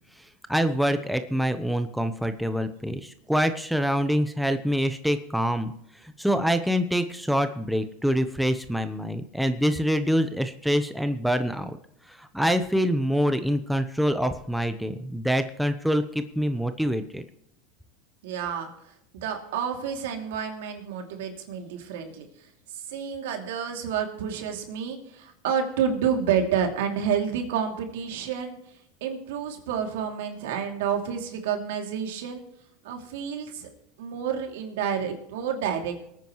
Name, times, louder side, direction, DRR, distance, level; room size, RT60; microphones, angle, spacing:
voice 1, 0.2-11.8 12.1-17.2, equal, ahead, 8 dB, 0.9 m, -25 dB
voice 2, 18.2-32.4 32.8-33.7 34.0-35.9, right 7 dB, 80° right, 3 dB, 2.7 m, -29 dB
23.5 x 9.3 x 3.1 m, 0.80 s
supercardioid pair, 115°, 0 cm